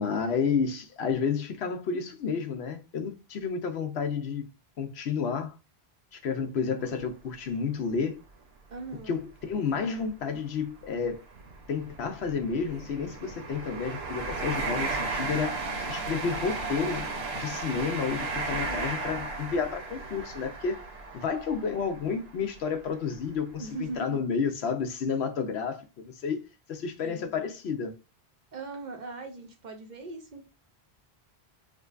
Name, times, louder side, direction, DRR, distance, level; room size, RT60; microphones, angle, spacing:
voice 1, 0.0-4.5 4.8-5.5 6.1-8.2 9.1-11.2 11.7-15.6 15.9-17.1 17.3-20.8 21.1-26.4 26.7-28.0, left 5 dB, 80° left, 0.9 m, -31 dB
sound 1, 6.8-7.0 7.6-7.7 8.8-8.9 9.2-9.4 10.1-22.8 23.3-23.5, right 3 dB, 75° right, 1.0 m, -35 dB
voice 2, 8.7-9.2 18.6-18.9 23.6-24.2 27.0-27.3 28.5-30.4, right 3 dB, 50° right, 0.7 m, -39 dB
4.9 x 2.2 x 2.4 m
omnidirectional pair, 1.1 m